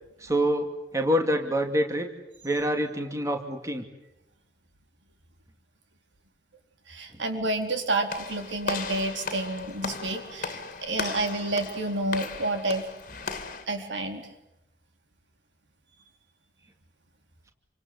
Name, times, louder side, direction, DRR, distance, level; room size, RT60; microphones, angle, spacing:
voice 1, 0.2-0.7 0.9-2.1 2.4-3.8, equal, 15° right, 5 dB, 2.3 m, -26 dB
voice 2, 6.9-12.9 13.7-14.3, right 2 dB, 80° right, 5 dB, 4.3 m, -29 dB
Walk footsteps / Slam, 8.1-13.7, left 4 dB, 45° left, 2.6 m, -36 dB
28.0 x 25.5 x 8.1 m, 0.90 s
head